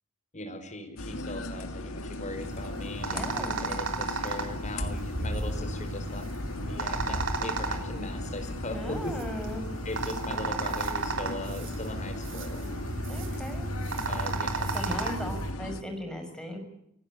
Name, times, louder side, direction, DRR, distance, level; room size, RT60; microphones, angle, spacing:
voice 1, 0.3-6.3 6.7-9.2 9.8-12.7 13.9-15.1, left 1 dB, 35° left, 7 dB, 4.9 m, -39 dB
sound 1, 1.0-15.8, left 2 dB, 90° left, 1.9 m, -38 dB
sound 2, 2.3-15.5, right 2 dB, 65° right, 3.5 m, -34 dB
voice 2, 3.1-3.7 8.7-9.7 13.1-13.7 14.7-16.6, equal, 5° left, 4 dB, 6.2 m, -37 dB
29.5 x 17.0 x 8.8 m, 0.78 s
head